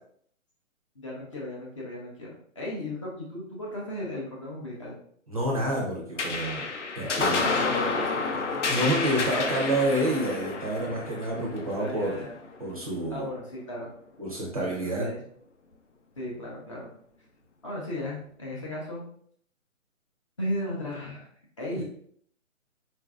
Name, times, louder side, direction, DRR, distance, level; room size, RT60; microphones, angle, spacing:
voice 1, 1.0-5.0 7.0-8.1 11.8-12.3 13.1-13.9 14.6-15.2 16.2-16.9 17.6-19.1 20.4-21.2 21.6-21.8, left 1 dB, 25° left, -4 dB, 0.6 m, -35 dB
voice 2, 5.3-6.6 6.9-7.6 8.7-12.3 12.6-13.3 14.2-15.1 21.7-21.8, right 1 dB, 30° right, -3 dB, 0.6 m, -28 dB
sound 1, 6.2-13.0, left 4 dB, 60° left, 0.7 m, -30 dB
4.1 x 2.6 x 2.3 m, 0.63 s
hypercardioid pair, 160°, 40 cm